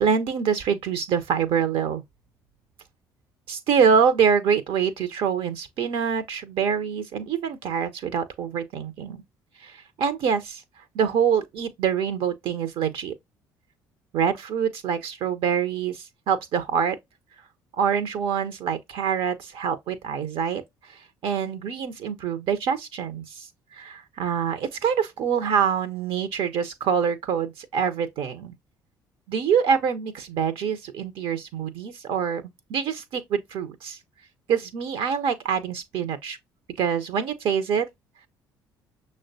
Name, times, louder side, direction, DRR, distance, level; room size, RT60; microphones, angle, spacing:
voice 1, 0.0-2.0 3.5-9.2 9.6-10.6 10.9-13.1 14.1-17.0 17.8-28.5 29.3-32.4 32.7-34.0 34.5-36.4 36.8-37.9, right 7 dB, 55° right, 0.6 m, -25 dB
6.3 x 2.1 x 2.6 m
figure-of-eight pair, 50°, 11 cm